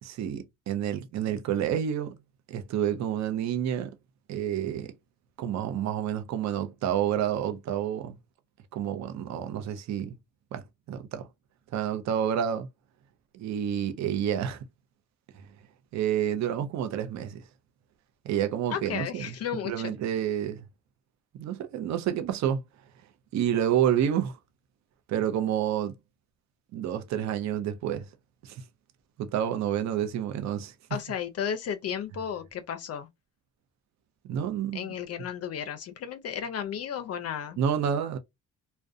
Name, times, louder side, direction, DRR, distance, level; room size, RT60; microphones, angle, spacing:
voice 1, 0.0-2.2 2.5-3.9 4.3-4.9 5.4-8.2 8.7-10.2 10.5-10.6 10.9-11.3 11.7-12.7 13.3-14.6 15.9-17.4 18.2-19.3 19.6-20.6 21.3-22.6 23.3-24.4 25.1-25.9 26.7-28.0 28.4-28.6 29.2-30.7 34.2-34.9 37.6-38.2, right 9 dB, 65° right, 0.5 m, -29 dB
voice 2, 18.7-19.9 30.9-33.1 34.7-37.6, left 8 dB, 55° left, 0.5 m, -34 dB
2.4 x 2.1 x 2.4 m
cardioid pair, 90°, 30 cm